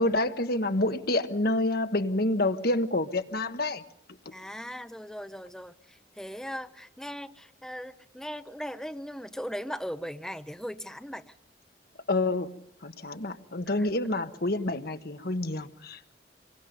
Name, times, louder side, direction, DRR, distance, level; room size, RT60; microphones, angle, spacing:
voice 1, 0.0-3.8 12.1-16.1, left 2 dB, 55° left, 1.3 m, -28 dB
voice 2, 4.3-11.3 13.7-13.9, equal, 5° left, 0.9 m, -39 dB
27.5 x 23.0 x 5.3 m
head